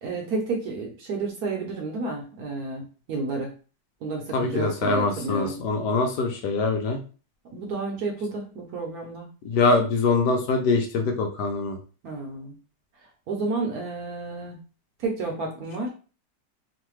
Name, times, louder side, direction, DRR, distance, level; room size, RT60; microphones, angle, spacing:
voice 1, 0.0-3.5 4.0-5.6 7.5-9.3 12.0-12.5 13.3-14.6 15.0-15.9, right 3 dB, 65° right, 1 dB, 1.0 m, -31 dB
voice 2, 4.3-7.0 9.4-11.8, left 3 dB, 75° left, 4 dB, 1.1 m, -23 dB
3.1 x 2.1 x 3.1 m, 0.36 s
omnidirectional pair, 1.9 m